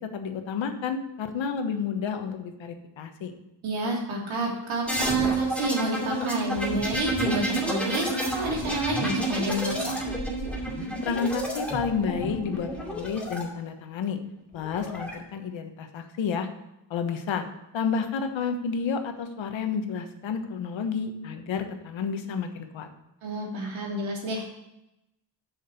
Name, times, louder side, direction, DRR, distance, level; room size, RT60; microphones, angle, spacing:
voice 1, 0.1-3.3 11.0-14.2 14.5-16.5 16.9-17.4 17.7-22.9, left 6 dB, 75° left, 6 dB, 1.3 m, -30 dB
voice 2, 3.6-10.0 23.2-24.5, right 2 dB, 85° right, -2 dB, 3.2 m, -29 dB
sound 1, 4.9-13.4 14.5-15.1, right 1 dB, 5° left, 2.4 m, -30 dB
6.8 x 6.5 x 7.8 m, 0.88 s
cardioid pair, 115°, 46 cm